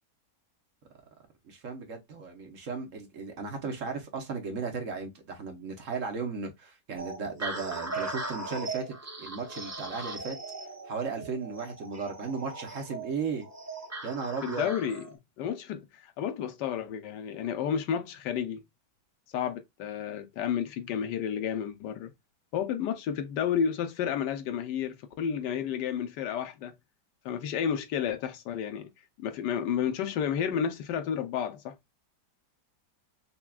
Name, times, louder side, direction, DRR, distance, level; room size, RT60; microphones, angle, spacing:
voice 1, 1.5-8.9 9.2-10.4 10.9-13.5 14.0-14.7, right 5 dB, 55° right, 1.2 m, -35 dB
sound 1, 7.0-15.1, right 3 dB, 15° right, 0.5 m, -39 dB
voice 2, 14.4-15.1 15.4-18.6 19.3-22.1 22.5-26.7 27.2-28.9 29.2-31.8, left 8 dB, 90° left, 1.3 m, -31 dB
5.7 x 2.3 x 2.3 m
omnidirectional pair, 1.8 m